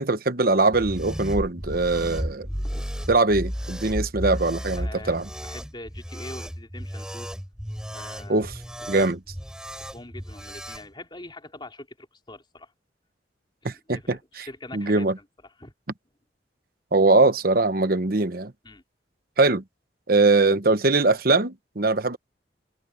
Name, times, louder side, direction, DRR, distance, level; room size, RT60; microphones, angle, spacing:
voice 1, 0.0-2.5 3.1-5.2 8.3-8.5 8.9-9.2 13.6-14.5 14.7-15.1 16.9-18.5 19.4-19.6 20.1-22.2, right 3 dB, 55° right, 1.1 m, -21 dB
sound 1, 0.7-10.9, equal, 5° right, 5.3 m, -33 dB
voice 2, 2.5-2.9 4.7-7.3 7.9-8.5 8.8-8.9 9.7-12.7 13.6-15.7 18.6-18.8, left 2 dB, 25° left, 4.1 m, -43 dB
head